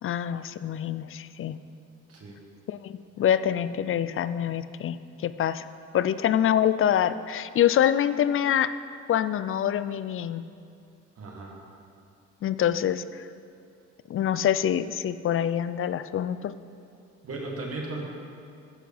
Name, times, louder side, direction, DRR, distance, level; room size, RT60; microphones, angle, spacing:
voice 1, 0.0-1.6 2.7-5.7 5.9-8.8 9.1-10.4 12.4-13.3 14.1-16.5, left 10 dB, 45° left, 14 dB, 0.4 m, -25 dB
voice 2, 2.1-2.4 11.2-11.6 17.2-18.0, right 2 dB, 50° right, -1 dB, 1.9 m, -36 dB
13.5 x 4.7 x 5.4 m, 2.4 s
cardioid pair, 90°, 30 cm